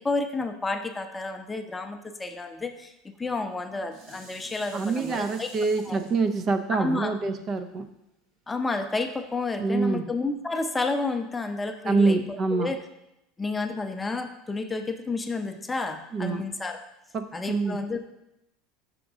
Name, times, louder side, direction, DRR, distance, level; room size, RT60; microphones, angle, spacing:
voice 1, 0.0-2.9 3.2-5.5 5.8-6.0 6.8-7.1 8.5-12.8 13.4-16.8 17.3-18.0, left 3 dB, 15° left, 7 dB, 0.6 m, -30 dB
Dishes pots and pans, 3.3-8.6 9.1-9.2, right 3 dB, 65° right, 1.7 m, -50 dB
voice 2, 4.7-7.9 9.6-10.0 11.9-12.7 16.1-16.4 17.1-17.8, right 4 dB, 40° right, 8 dB, 0.5 m, -26 dB
5.9 x 5.1 x 3.6 m, 0.87 s
supercardioid pair, 95°, 0 cm